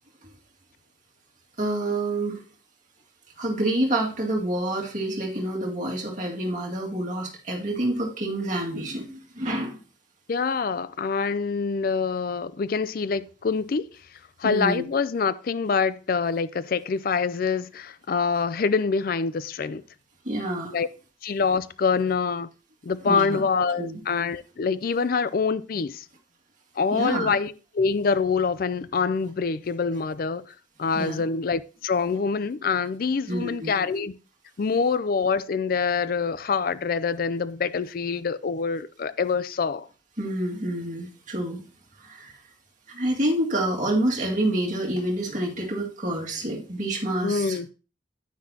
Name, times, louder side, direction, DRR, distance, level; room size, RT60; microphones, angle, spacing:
voice 1, 1.6-2.4 3.4-9.8 14.4-14.8 20.3-20.8 23.1-23.4 23.8-24.0 26.9-27.3 31.0-31.2 33.3-33.8 40.2-41.6 42.0-42.3 42.9-47.7, right 1 dB, 40° right, 2.1 m, -28 dB
voice 2, 10.3-13.9 14.4-19.8 20.7-20.9 21.2-22.5 22.8-26.0 26.8-30.5 30.8-34.1 34.6-39.9 47.2-47.7, left 5 dB, 50° left, 0.4 m, -25 dB
9.7 x 9.6 x 2.8 m
head